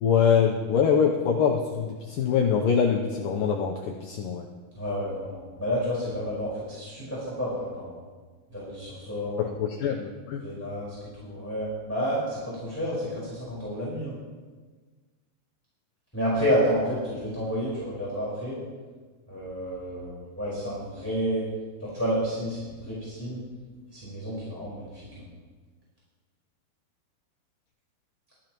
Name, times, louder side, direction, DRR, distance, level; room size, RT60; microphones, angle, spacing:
voice 1, 0.0-4.4 9.4-10.4, left 7 dB, 85° left, 1 dB, 1.9 m, -24 dB
voice 2, 4.7-7.9 8.5-9.4 10.4-14.1 16.1-18.6 19.3-21.4 21.8-23.4 23.9-25.3, equal, 5° left, -9 dB, 4.0 m, -30 dB
21.5 x 13.5 x 3.1 m, 1.4 s
omnidirectional pair, 5.0 m